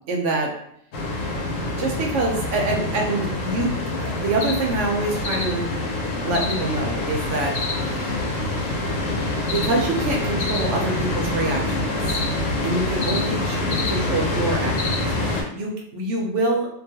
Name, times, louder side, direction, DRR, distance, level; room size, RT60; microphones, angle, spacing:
voice 1, 0.1-0.5 1.8-3.7 4.0-5.7 6.2-7.5 7.8-8.1 9.5-11.8 12.6-16.7, right 2 dB, 75° right, 0 dB, 0.9 m, -25 dB
sound 1, 0.9-15.4, left 2 dB, 90° left, 1.0 m, -25 dB
2.4 x 2.3 x 2.7 m, 0.72 s
omnidirectional pair, 1.3 m